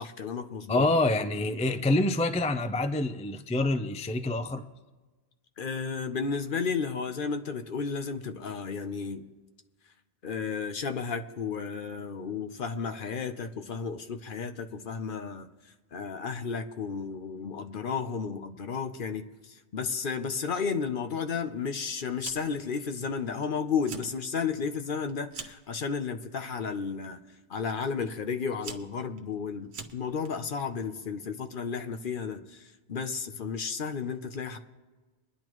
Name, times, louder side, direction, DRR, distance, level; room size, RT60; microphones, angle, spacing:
voice 1, 0.0-0.9 5.6-9.3 10.2-15.5 15.9-27.2 27.5-32.6 32.9-34.6, left 5 dB, 55° left, 8 dB, 0.9 m, -33 dB
voice 2, 0.7-4.6, left 2 dB, 10° left, 9 dB, 0.3 m, -26 dB
Fire, 22.2-22.7 23.0-23.5 23.7-24.1 24.5-25.7 26.5-26.8 27.7-27.8 28.3-30.3, right 5 dB, 80° right, 1.2 m, -43 dB
23.5 x 10.0 x 3.1 m, 1.2 s
omnidirectional pair, 1.1 m